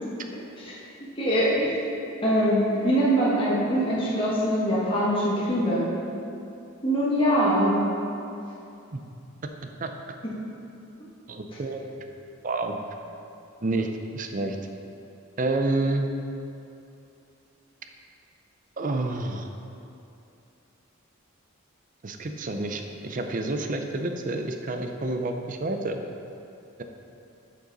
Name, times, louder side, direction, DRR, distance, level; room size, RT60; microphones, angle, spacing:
voice 1, 1.2-1.7 2.2-5.9 6.8-7.8, equal, 25° left, -7 dB, 1.3 m, -23 dB
voice 2, 11.3-11.8 12.4-12.8 13.6-13.9 14.1-14.6 15.4-16.1 18.8-19.5 22.0-26.0, right 2 dB, 40° right, 5 dB, 0.5 m, -28 dB
10.5 x 5.4 x 4.0 m, 2.7 s
head